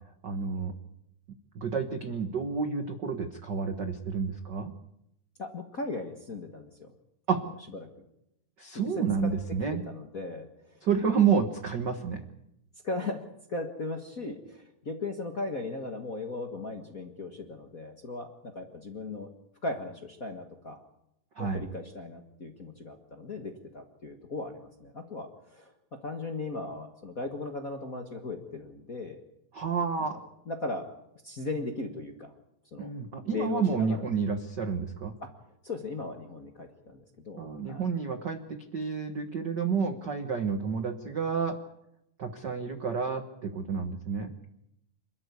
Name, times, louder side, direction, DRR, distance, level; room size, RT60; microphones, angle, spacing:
voice 1, 0.2-0.7 1.5-4.7 7.3-7.4 8.6-9.8 10.8-12.3 21.4-21.6 29.5-30.2 32.8-35.1 37.4-41.6 42.2-44.3, right 6 dB, 75° right, 8 dB, 0.9 m, -30 dB
voice 2, 5.4-6.9 7.7-7.9 8.7-9.3 9.7-10.8 12.8-19.3 19.6-20.8 21.4-25.7 26.0-29.2 30.0-30.1 30.4-30.9 31.2-32.3 32.7-32.9 33.3-34.1 35.2-35.3 35.6-37.9, left 3 dB, 40° left, 4 dB, 1.2 m, -37 dB
27.0 x 13.0 x 9.7 m, 0.83 s
omnidirectional pair, 4.0 m